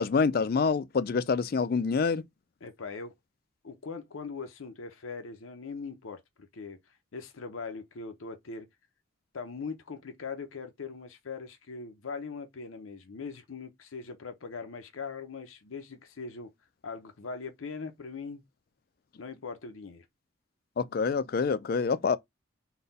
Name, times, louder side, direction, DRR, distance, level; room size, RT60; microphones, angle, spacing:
voice 1, 0.0-2.2 20.8-22.2, left 5 dB, 50° left, 0.3 m, -26 dB
voice 2, 2.6-3.1 3.6-8.7 9.3-16.5 16.8-18.4 19.2-20.0, left 4 dB, 90° left, 0.7 m, -41 dB
4.0 x 2.2 x 3.9 m
head